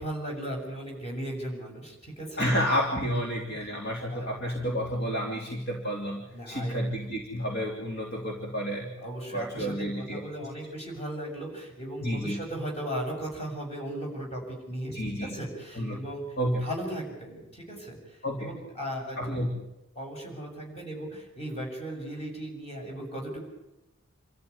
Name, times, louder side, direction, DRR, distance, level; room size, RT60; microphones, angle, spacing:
voice 1, 0.0-2.4 4.1-4.3 6.3-6.7 9.0-14.9 15.2-16.2 16.6-19.3 20.0-23.5, right 1 dB, 30° left, 0 dB, 7.1 m, -37 dB
voice 2, 2.4-8.9 9.3-10.2 12.0-12.4 14.9-15.4 15.7-16.0 16.4-16.6 18.2-18.5 19.2-19.6, equal, 50° left, -1 dB, 3.2 m, -30 dB
27.5 x 14.0 x 9.7 m, 0.96 s
head